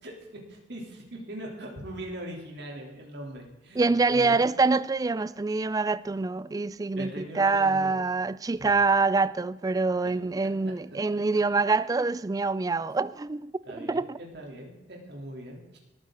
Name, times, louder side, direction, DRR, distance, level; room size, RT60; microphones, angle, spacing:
voice 1, 0.0-4.5 7.0-8.0 13.6-15.8, right 1 dB, 65° right, 3.3 m, -41 dB
voice 2, 3.8-14.2, right 3 dB, 20° right, 0.3 m, -25 dB
19.5 x 9.4 x 3.9 m
head